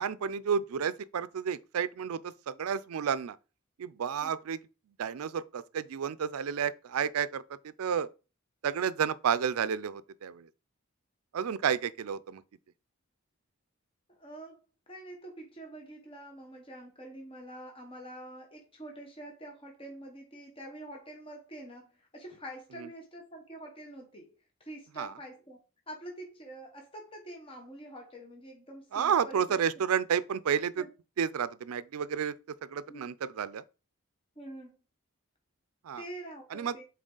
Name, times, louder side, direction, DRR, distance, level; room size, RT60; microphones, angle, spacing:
voice 1, 0.0-3.4 3.8-4.6 5.0-8.1 8.6-10.5 11.3-12.4 22.8-22.9 25.0-25.1 28.9-30.9 31.2-32.3 32.6-33.6 35.8-36.0 36.5-36.8, right 7 dB, 90° right, 0.4 m, -31 dB
voice 2, 14.1-25.6 25.9-29.6 30.8-30.9 32.9-33.0 34.4-34.8 36.0-36.8, right 1 dB, 25° left, 1.1 m, -46 dB
6.3 x 4.2 x 3.8 m
head